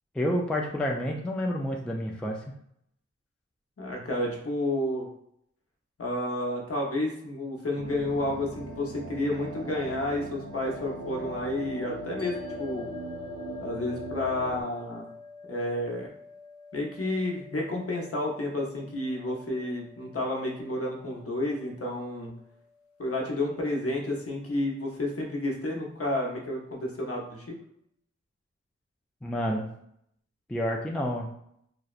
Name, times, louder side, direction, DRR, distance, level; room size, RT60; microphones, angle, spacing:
voice 1, 0.1-2.5 29.2-29.7 30.5-31.3, equal, 5° left, 0 dB, 0.3 m, -29 dB
voice 2, 3.8-5.1 6.0-12.9 13.6-15.1 15.5-16.1 16.7-22.3 23.0-27.6, left 1 dB, 50° left, -1 dB, 0.7 m, -31 dB
sound 1, 7.8-14.6, right 1 dB, 75° right, 0.5 m, -39 dB
sound 2, 12.2-24.7, left 4 dB, 90° left, 0.5 m, -48 dB
2.7 x 2.0 x 2.4 m, 0.72 s
wide cardioid pair, 55°, 29 cm